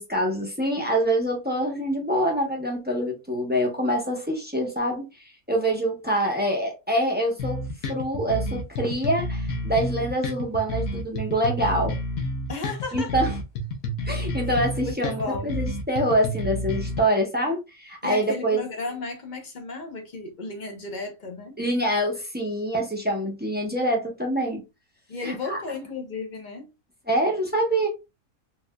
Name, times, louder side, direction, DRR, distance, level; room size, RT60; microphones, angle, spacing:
voice 1, 0.0-5.0 5.5-7.6 7.9-11.9 12.9-13.3 14.1-18.6 21.6-24.6 25.2-25.6 27.1-27.9, right 1 dB, 10° right, 0.7 m, -25 dB
sound 1, 7.4-17.0, left 1 dB, 80° left, 1.2 m, -30 dB
voice 2, 12.5-13.1 14.8-15.5 18.0-21.6 25.1-26.7, left 3 dB, 40° left, 0.8 m, -34 dB
4.1 x 2.5 x 2.2 m
omnidirectional pair, 1.5 m